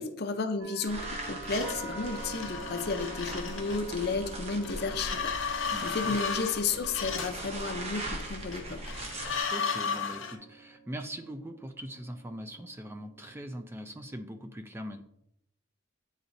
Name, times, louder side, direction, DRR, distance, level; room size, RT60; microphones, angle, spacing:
voice 1, 0.0-8.9, left 4 dB, 50° left, 7 dB, 0.6 m, -33 dB
sound 1, 0.6-14.5, right 2 dB, 80° right, 0.8 m, -47 dB
sound 2, 0.9-9.4, right 1 dB, 30° right, 0.8 m, -41 dB
sound 3, 1.5-4.1 4.6-7.4 8.5-10.3, left 6 dB, 75° left, 1.0 m, -35 dB
voice 2, 5.7-6.2 9.5-15.0, equal, 10° right, 5 dB, 0.3 m, -41 dB
9.2 x 4.0 x 2.6 m, 0.76 s
head